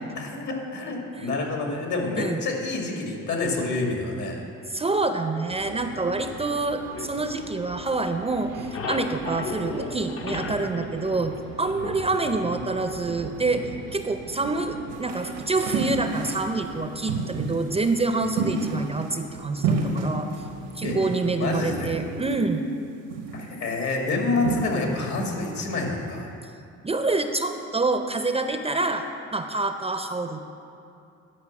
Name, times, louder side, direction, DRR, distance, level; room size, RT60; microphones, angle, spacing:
voice 1, 0.2-4.5 11.8-12.0 20.8-21.0 21.4-22.0 23.3-26.3, left 3 dB, 70° left, 0 dB, 2.1 m, -28 dB
voice 2, 4.7-13.6 13.9-20.3 20.8-22.6 26.8-30.4, right 3 dB, 20° right, 7 dB, 0.5 m, -27 dB
sound 1, 5.5-22.4, right 6 dB, 65° right, 0.6 m, -41 dB
sound 2, 6.9-8.1 8.4-12.1, left 5 dB, 50° left, 0.8 m, -36 dB
sound 3, 14.9-16.6 17.1-17.7 18.4-19.4 19.6-20.4 20.8-21.4 21.9-22.4 23.1-23.5 24.4-25.1 25.3-25.5, right 4 dB, 85° right, 1.2 m, -29 dB
10.5 x 5.1 x 7.2 m, 2.6 s
cardioid pair, 90°, 30 cm